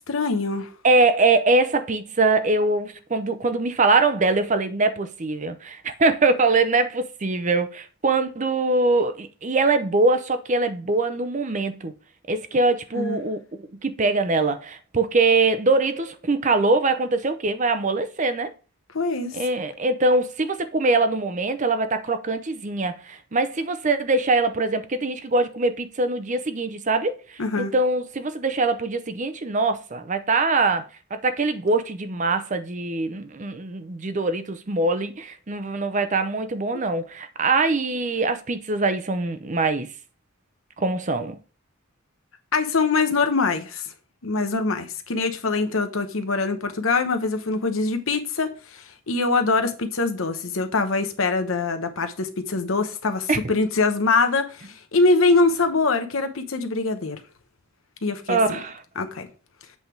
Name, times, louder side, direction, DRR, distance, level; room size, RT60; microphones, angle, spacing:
voice 1, 0.1-0.7 13.0-13.2 18.9-19.4 27.4-27.7 36.7-36.8 42.5-43.9 44.2-57.2 58.0-58.6 59.0-59.3, left 3 dB, 75° left, 1.0 m, -23 dB
voice 2, 0.8-11.9 12.3-13.4 13.8-18.5 19.3-39.9 40.8-41.4 53.3-53.4 58.3-58.8, right 3 dB, 35° right, 0.6 m, -23 dB
8.1 x 3.5 x 4.5 m
head